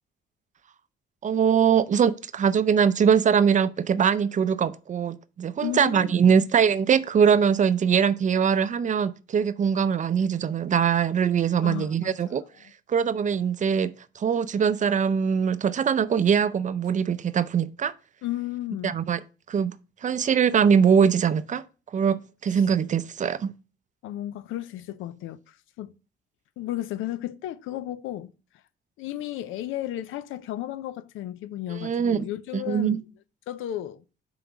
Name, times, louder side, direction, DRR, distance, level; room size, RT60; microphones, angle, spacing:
voice 1, 1.2-12.4 12.9-17.9 18.8-19.2 19.5-19.7 20.0-21.6 21.9-23.5 31.7-32.2 32.5-33.0, right 7 dB, 40° right, 0.5 m, -22 dB
voice 2, 5.6-6.5 11.6-12.4 18.2-19.0 24.0-25.9 26.6-28.3 29.0-33.0 33.5-34.0, left 13 dB, 85° left, 0.5 m, -34 dB
5.4 x 3.8 x 5.8 m
cardioid pair, 90°, 20 cm